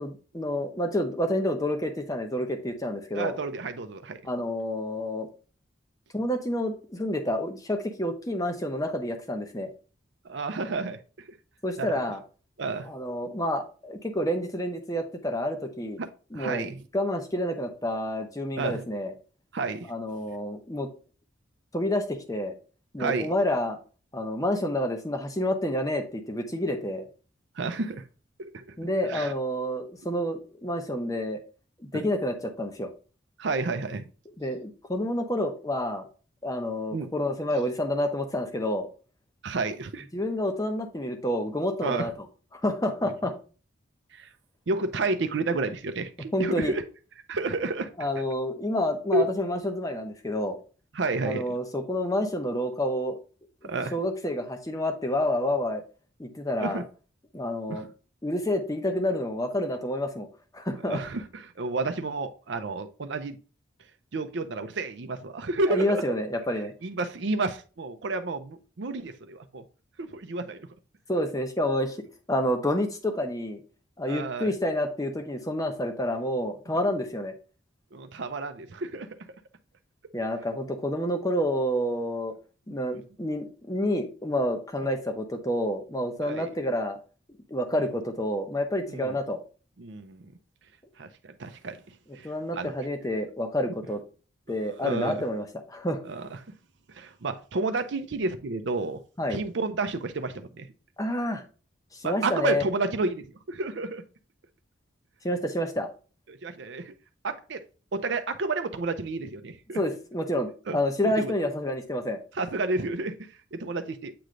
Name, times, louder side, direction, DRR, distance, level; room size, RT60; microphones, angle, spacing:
voice 1, 0.0-3.3 4.2-5.3 6.1-9.7 11.6-12.2 12.8-16.0 16.3-16.7 16.9-19.1 19.9-20.9 21.7-22.5 22.9-23.8 24.1-27.1 28.8-31.4 31.8-32.9 34.4-36.0 36.4-38.9 40.1-42.1 42.5-43.3 46.3-46.8 48.0-50.6 51.3-53.2 53.9-55.8 56.2-56.8 57.3-57.9 58.2-60.3 60.5-61.0 65.7-66.7 71.1-72.0 72.3-73.6 74.0-77.3 80.1-82.3 82.7-87.0 87.5-89.4 92.2-94.0 94.5-96.0 99.2-99.4 101.0-101.4 101.9-102.6 105.2-105.9 109.7-112.2, left 1 dB, 15° left, 0.8 m, -29 dB
voice 2, 3.1-4.2 10.2-11.0 11.2-11.4 11.8-11.9 12.6-12.9 16.0-16.1 16.3-16.8 18.6-18.8 19.5-19.9 23.0-23.3 27.6-28.1 28.4-28.6 29.1-29.3 31.9-32.1 33.4-34.1 36.9-37.1 39.4-40.1 41.8-42.1 43.0-43.1 44.1-44.3 44.7-46.8 47.3-48.1 49.1-49.3 50.9-51.4 53.6-53.9 56.6-56.8 57.7-57.8 60.8-63.4 64.1-66.0 66.8-69.6 70.0-70.6 74.0-74.5 77.9-79.1 82.7-83.0 86.2-86.5 87.7-87.8 88.9-89.1 89.8-90.3 91.0-91.8 92.1-92.7 94.8-95.2 96.0-96.3 96.9-99.0 99.3-100.7 102.0-104.0 106.3-106.9 107.2-107.6 107.9-109.8 110.7-110.8 111.0-111.3 112.3-114.1, right 3 dB, 60° right, 0.5 m, -31 dB
7.8 x 3.2 x 3.7 m
head